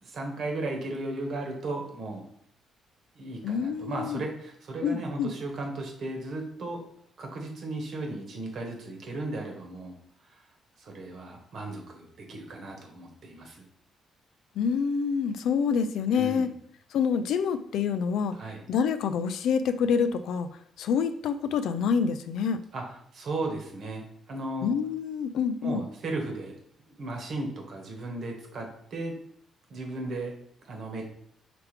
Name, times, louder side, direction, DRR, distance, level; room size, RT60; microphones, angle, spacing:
voice 1, 0.0-2.2 3.1-6.8 7.2-9.9 10.3-10.4 10.8-13.6 16.1-16.5 18.3-18.6 22.7-22.8 23.1-24.7 25.6-26.5 27.0-29.1 29.7-30.3 30.6-31.0, right 2 dB, 60° right, 1 dB, 1.2 m, -35 dB
voice 2, 3.4-4.2 4.8-5.3 14.6-16.5 16.9-18.3 18.7-20.5 20.8-22.6 24.6-25.8, left 6 dB, 80° left, 10 dB, 0.3 m, -27 dB
4.9 x 3.3 x 3.2 m, 0.68 s
cardioid pair, 90°, 0 cm